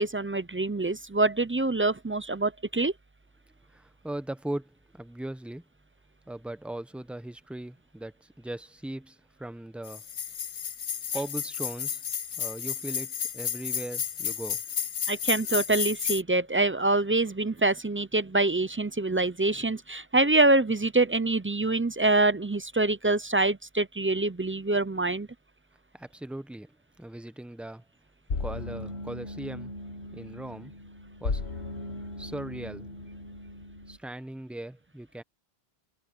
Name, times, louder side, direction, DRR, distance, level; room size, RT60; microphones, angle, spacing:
voice 1, 0.0-2.9 15.1-25.3, right 2 dB, 20° right, 0.3 m, -25 dB
voice 2, 3.7-5.6 6.3-10.0 11.1-12.0 12.4-14.6 25.9-26.7 27.0-27.8 28.4-29.7 30.1-30.7 31.2-31.4 32.2-32.9 33.9-35.2, right 1 dB, ahead, 0.8 m, -39 dB
sound 1, 9.9-16.2, left 7 dB, 50° left, 0.8 m, -32 dB
sound 2, 28.3-34.0, left 3 dB, 85° left, 1.7 m, -37 dB
omnidirectional pair, 1.1 m